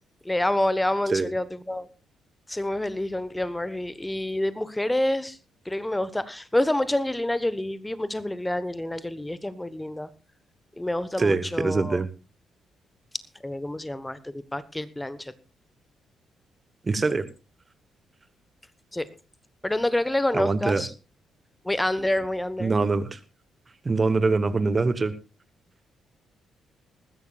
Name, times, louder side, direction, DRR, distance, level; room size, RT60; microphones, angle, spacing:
voice 1, 0.2-1.9 2.5-5.4 5.6-10.1 10.8-12.0 13.4-15.3 18.9-19.0 19.6-20.9 21.6-22.7, left 1 dB, 10° left, 15 dB, 1.2 m, -27 dB
voice 2, 11.2-12.1 16.8-17.3 20.3-20.9 22.6-23.2 23.8-25.1, right 3 dB, 30° right, 14 dB, 1.2 m, -23 dB
20.0 x 14.5 x 2.4 m, 0.30 s
figure-of-eight pair, 40°, 0 cm